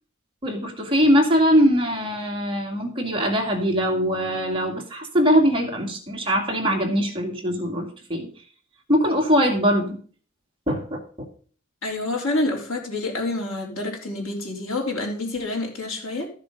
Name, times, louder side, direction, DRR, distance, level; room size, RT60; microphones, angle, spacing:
voice 1, 0.4-8.3 8.9-10.0 10.7-11.0, equal, 25° right, 2.3 m, -21 dB
voice 2, 11.8-16.3, left 2 dB, 75° left, 3.7 m, -28 dB
13.5 x 6.9 x 5.2 m
head